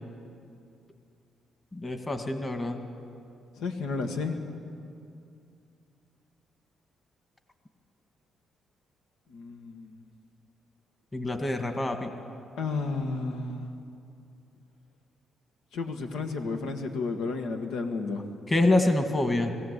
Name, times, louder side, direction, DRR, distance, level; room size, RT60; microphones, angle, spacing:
voice 1, 1.7-2.8 11.1-12.1 18.5-19.5, left 2 dB, 20° left, 5 dB, 1.8 m, -26 dB
voice 2, 3.6-4.4 9.3-10.0 12.6-13.7 15.7-18.2, left 4 dB, 85° left, 4 dB, 1.7 m, -32 dB
20.5 x 16.0 x 8.3 m, 2.5 s
cardioid pair, 90°, 0 cm